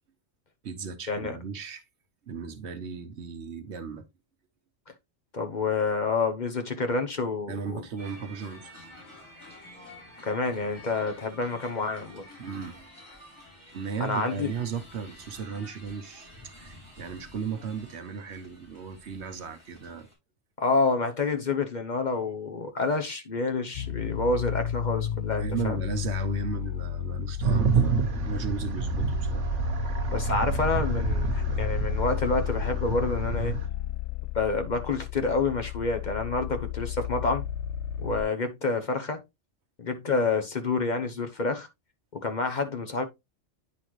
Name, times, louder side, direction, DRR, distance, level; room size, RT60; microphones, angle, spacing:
voice 1, 0.6-1.8 2.3-4.1 7.5-8.7 12.4-12.9 13.7-20.1 25.4-29.5, right 6 dB, 70° right, 1.2 m, -36 dB
voice 2, 5.3-7.8 10.2-12.2 14.0-14.5 20.6-25.8 30.1-33.5 34.3-37.4 38.0-39.2 39.8-41.7 42.1-43.0, left 3 dB, 45° left, 0.9 m, -28 dB
sound 1, 8.0-20.1, left 1 dB, 25° left, 4.4 m, -50 dB
sound 2, 23.7-38.2, left 8 dB, 75° left, 0.9 m, -32 dB
sound 3, 27.4-33.7, right 6 dB, 90° right, 1.3 m, -29 dB
9.9 x 4.1 x 3.0 m
omnidirectional pair, 1.2 m